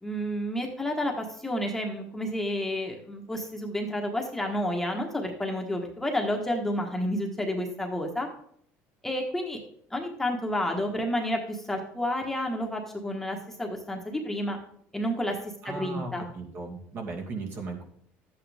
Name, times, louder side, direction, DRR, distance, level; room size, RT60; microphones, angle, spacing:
voice 1, 0.0-8.3 9.0-9.6 9.9-14.6 14.9-15.4 15.6-16.3, left 1 dB, 5° left, 1 dB, 1.5 m, -30 dB
voice 2, 15.6-17.8, right 3 dB, 45° right, 1 dB, 2.2 m, -37 dB
12.5 x 8.7 x 3.5 m, 0.64 s
cardioid pair, 145°, 5 cm